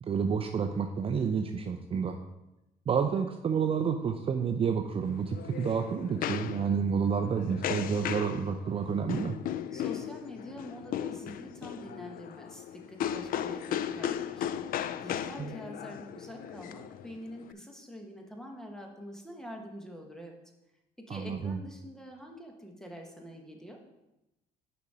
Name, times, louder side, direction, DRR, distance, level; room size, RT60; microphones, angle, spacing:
voice 1, 0.0-2.2 2.9-9.4 21.1-21.6, right 6 dB, 35° right, 5 dB, 0.5 m, -29 dB
sound 1, 5.0-17.5, left 10 dB, 55° left, 0.4 m, -36 dB
voice 2, 9.7-20.4 21.0-23.8, equal, 5° left, 2 dB, 1.2 m, -46 dB
7.0 x 5.1 x 4.8 m, 0.95 s
cardioid pair, 110°, 17 cm